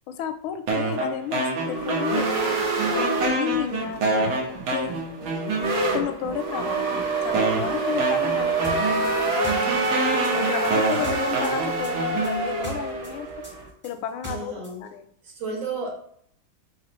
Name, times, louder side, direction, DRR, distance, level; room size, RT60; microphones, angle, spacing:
voice 1, 0.1-2.7 3.3-4.3 4.7-4.9 5.9-9.7 10.3-13.3 13.8-15.1, left 10 dB, 90° left, 8 dB, 1.4 m, -32 dB
sound 1, 0.7-2.5 2.8-6.0 6.8-6.9 7.3-12.7, right 2 dB, 90° right, 1.8 m, -27 dB
sound 2, 1.6-13.7, right 3 dB, 50° right, 0.9 m, -27 dB
sound 3, 8.6-11.6 11.8-14.7, equal, 10° right, 0.7 m, -38 dB
voice 2, 14.3-14.8 15.2-16.0, right 4 dB, 75° right, 0 dB, 1.9 m, -32 dB
4.4 x 4.1 x 3.0 m, 0.64 s
omnidirectional pair, 2.2 m